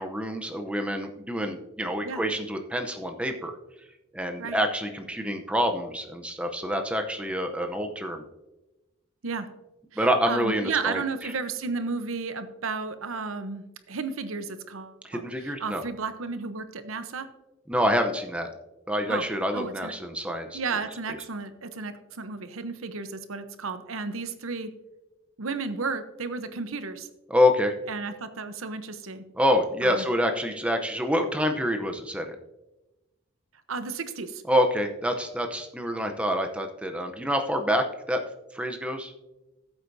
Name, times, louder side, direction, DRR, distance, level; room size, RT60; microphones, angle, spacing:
voice 1, 0.0-3.5 4.1-8.2 10.0-11.3 15.0-15.8 17.7-18.5 18.9-20.6 27.3-27.7 29.4-32.4 34.5-38.2 38.5-39.1, equal, 5° right, 5 dB, 0.6 m, -27 dB
voice 2, 9.9-17.3 19.1-19.3 19.5-19.9 20.5-24.7 25.4-27.1 27.9-29.2 29.8-30.1 33.7-34.4, right 4 dB, 85° right, 10 dB, 0.8 m, -33 dB
14.5 x 8.0 x 2.7 m, 1.0 s
head